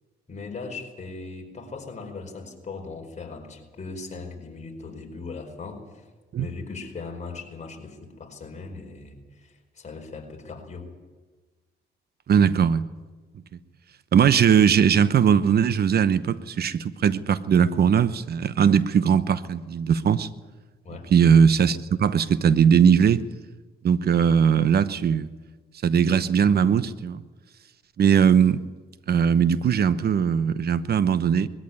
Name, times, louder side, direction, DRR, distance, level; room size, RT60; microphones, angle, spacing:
voice 1, 0.3-6.1 6.4-10.9 20.8-21.1, left 4 dB, 35° left, 4.8 m, -39 dB
voice 2, 12.3-12.9 14.1-20.3 21.1-23.2 23.8-25.3 25.8-27.2 28.0-28.6 29.1-31.5, right 7 dB, 50° right, 1.0 m, -19 dB
21.0 x 14.0 x 9.5 m
cardioid pair, 90°, 20 cm